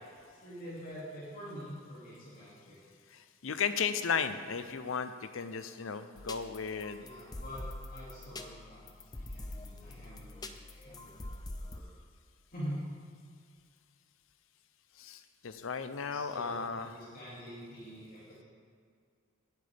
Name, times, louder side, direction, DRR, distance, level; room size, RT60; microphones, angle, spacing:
voice 1, 0.3-2.8 7.0-7.6 7.9-10.4 10.7-11.2 11.6-11.9 12.5-12.8 16.0-18.4, equal, 45° left, -9 dB, 2.5 m, -45 dB
voice 2, 3.1-7.1 15.0-16.9, left 6 dB, 65° left, 11 dB, 0.6 m, -35 dB
sound 1, 6.2-11.8, left 1 dB, 20° left, 0.5 m, -45 dB
18.5 x 7.9 x 3.5 m, 2.2 s
head